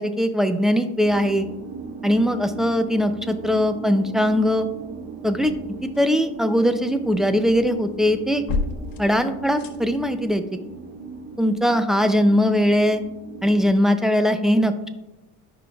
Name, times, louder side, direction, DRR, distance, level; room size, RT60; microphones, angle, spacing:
voice 1, 0.0-1.5 2.0-4.7 5.2-5.5 6.0-8.4 9.0-10.4 11.4-13.0 13.4-14.9, equal, ahead, 9 dB, 0.3 m, -20 dB
sound 1, 1.0-13.7, right 5 dB, 90° right, 1.7 m, -38 dB
sound 2, 5.1-6.4 6.7-10.3, left 4 dB, 55° left, 0.9 m, -33 dB
13.5 x 5.4 x 2.3 m, 0.99 s
supercardioid pair, 110°, 40 cm